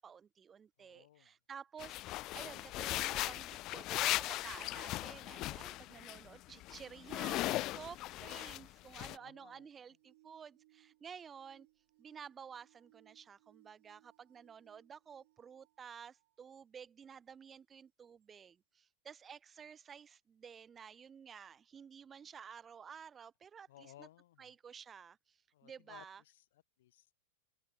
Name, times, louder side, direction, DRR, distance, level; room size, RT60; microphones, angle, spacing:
voice 1, 0.0-11.7 12.0-24.1 24.4-26.2, right 7 dB, 20° right, 2.0 m, -52 dB
voice 2, 0.8-1.3 9.1-9.7 23.7-24.5 25.5-27.2, left 14 dB, 55° left, 1.8 m, -60 dB
sound 1, 1.8-6.2 6.5-8.7 8.9-9.2, left 17 dB, 35° left, 0.4 m, -38 dB
sound 2, 8.7-16.4 17.1-17.2 18.2-18.3, right 20 dB, 50° right, 6.3 m, -70 dB
open air
figure-of-eight pair, 90°, 0 cm